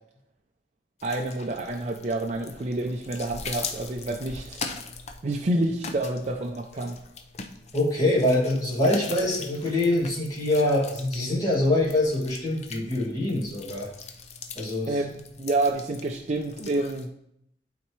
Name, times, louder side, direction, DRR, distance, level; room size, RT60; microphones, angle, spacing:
sound 1, 1.0-17.1, left 4 dB, 40° left, 0.6 m, -41 dB
voice 1, 1.0-4.6 5.2-7.0 14.9-17.1, right 2 dB, 40° right, 1 dB, 0.5 m, -28 dB
voice 2, 7.7-13.9 14.6-15.0, left 1 dB, 20° left, -6 dB, 2.3 m, -24 dB
11.5 x 4.1 x 3.2 m, 0.75 s
head